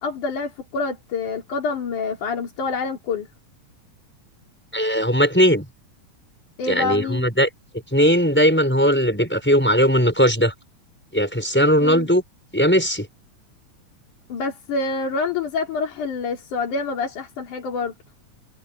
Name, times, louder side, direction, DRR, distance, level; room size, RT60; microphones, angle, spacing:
voice 1, 0.0-3.3 6.6-7.3 11.8-12.1 14.3-17.9, left 4 dB, 85° left, 4.5 m, -27 dB
voice 2, 4.7-5.7 6.7-7.5 7.9-10.5 11.1-12.2 12.5-13.1, equal, 5° left, 6.0 m, -18 dB
omnidirectional pair, 3.5 m